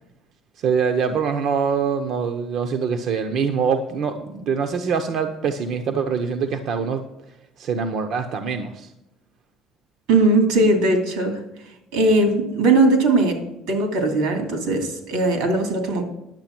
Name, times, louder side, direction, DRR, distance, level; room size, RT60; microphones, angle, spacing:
voice 1, 0.6-7.0 7.6-8.9, right 6 dB, 50° right, 7 dB, 0.8 m, -24 dB
voice 2, 10.1-11.4 11.9-13.4 13.7-16.0, right 2 dB, 80° right, 5 dB, 2.8 m, -19 dB
10.5 x 8.1 x 6.0 m, 0.91 s
cardioid pair, 170°, 0 cm